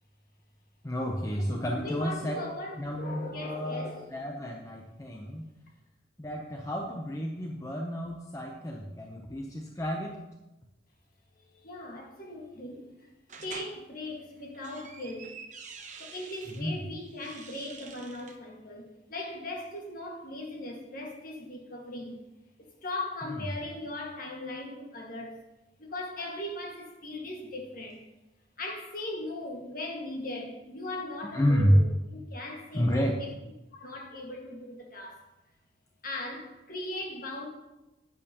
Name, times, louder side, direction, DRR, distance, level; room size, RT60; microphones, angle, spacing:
voice 1, 0.8-2.4 2.8-5.5 6.2-10.1 16.5-16.7 23.3-23.5 31.3-31.8 32.7-33.2, equal, 15° left, 0 dB, 0.7 m, -30 dB
voice 2, 1.4-4.1 11.5-13.1 13.4-15.4 15.9-22.2 22.8-25.4 25.8-28.0 28.6-31.9 32.3-33.3 33.7-35.3 36.0-37.5, left 1 dB, 45° left, 0 dB, 1.7 m, -39 dB
sound 1, 13.3-13.7 14.4-16.6 17.1-18.4, right 5 dB, 40° right, 0.9 m, -46 dB
10.5 x 8.9 x 2.9 m, 0.99 s
head